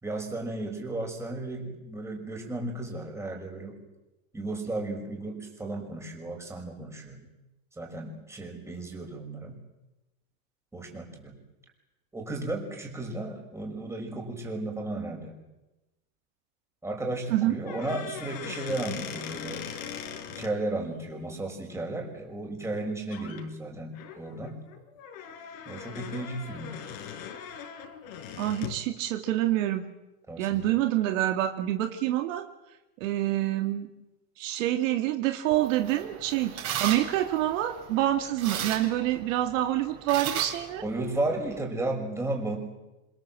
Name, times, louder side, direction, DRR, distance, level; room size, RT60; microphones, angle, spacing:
voice 1, 0.0-3.8 4.3-7.3 7.7-9.6 10.7-11.3 12.1-15.4 16.8-19.7 20.3-24.6 25.7-26.8 30.3-30.8 40.8-42.6, right 2 dB, 5° right, 1 dB, 6.0 m, -34 dB
sound 1, 17.6-20.5 22.6-22.8 23.1-23.4 23.9-28.8, left 8 dB, 65° left, 4.8 m, -40 dB
voice 2, 28.4-29.8 30.4-32.4 33.0-33.9 34.4-40.8, right 13 dB, 60° right, 5 dB, 2.6 m, -27 dB
sound 2, 35.5-41.6, right 9 dB, 35° right, 7.3 m, -37 dB
26.5 x 26.5 x 7.9 m, 1.0 s
supercardioid pair, 150°, 44 cm